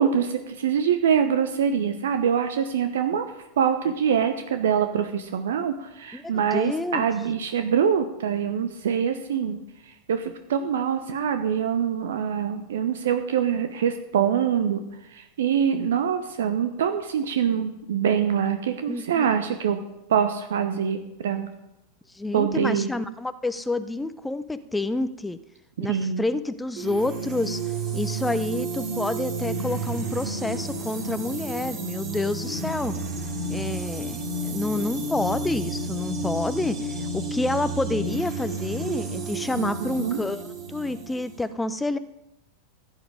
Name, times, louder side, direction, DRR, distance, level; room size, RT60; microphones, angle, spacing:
voice 1, 0.0-3.3 3.6-9.6 10.1-14.8 15.1-19.8 20.1-21.5 22.3-22.9 25.8-26.2 39.5-40.2, right 8 dB, 60° right, 8 dB, 0.9 m, -24 dB
voice 2, 6.1-7.0 18.9-19.2 22.1-25.4 25.8-27.6 27.9-33.0 33.5-42.0, left 2 dB, 5° left, 12 dB, 0.6 m, -29 dB
sound 1, 26.8-41.5, right 2 dB, 40° right, 3.5 m, -31 dB
15.5 x 9.3 x 5.1 m, 0.91 s
figure-of-eight pair, 90°, 0 cm